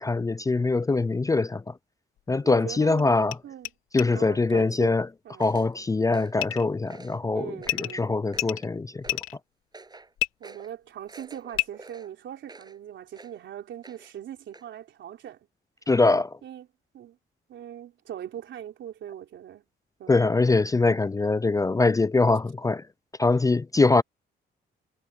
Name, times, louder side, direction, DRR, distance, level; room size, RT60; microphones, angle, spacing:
voice 1, 0.0-1.7 2.3-3.3 3.9-5.1 5.4-9.0 15.9-16.4 20.1-22.8 23.2-24.0, left 3 dB, 15° left, 0.4 m, -23 dB
sound 1, 2.2-2.3 3.0-3.1 3.3-3.4 3.6-3.7 4.0-4.1 6.4-6.7 7.6-7.9 8.3-9.4 10.2-10.3 11.5-11.7, left 16 dB, 90° left, 2.9 m, -29 dB
voice 2, 2.4-3.1 3.4-3.7 4.1-5.0 5.2-5.5 7.3-8.0 10.4-15.5 16.4-16.7 16.9-17.2 17.5-19.6 20.0-20.4, right 10 dB, 70° right, 3.6 m, -40 dB
sound 2, 5.4-5.7 6.1-6.5 6.9-7.3 7.6-8.0 8.3-8.7 9.0-9.3 9.7-10.1 10.4-10.7 11.1-12.8 13.1-13.4 13.8-14.2 14.5-14.7, right 3 dB, 20° right, 7.9 m, -48 dB
cardioid pair, 90°, 20 cm